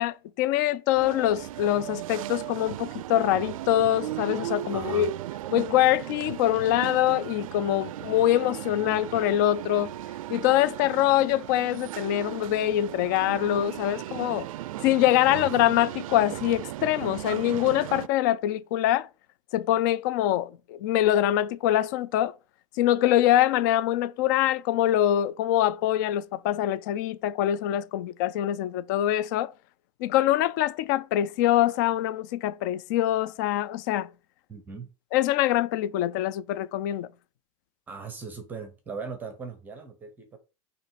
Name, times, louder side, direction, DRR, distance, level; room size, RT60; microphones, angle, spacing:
voice 1, 0.0-5.1 5.5-9.9 10.3-14.5 14.8-19.1 19.5-22.3 22.8-29.5 30.0-34.1 35.1-37.1, left 13 dB, 35° left, 0.4 m, -24 dB
sound 1, 0.9-18.1, right 14 dB, 80° right, 0.4 m, -36 dB
voice 2, 4.7-5.1 15.3-15.5 34.5-34.9 37.9-40.4, right 5 dB, 10° right, 0.7 m, -39 dB
7.4 x 3.0 x 5.7 m
supercardioid pair, 175°, 18 cm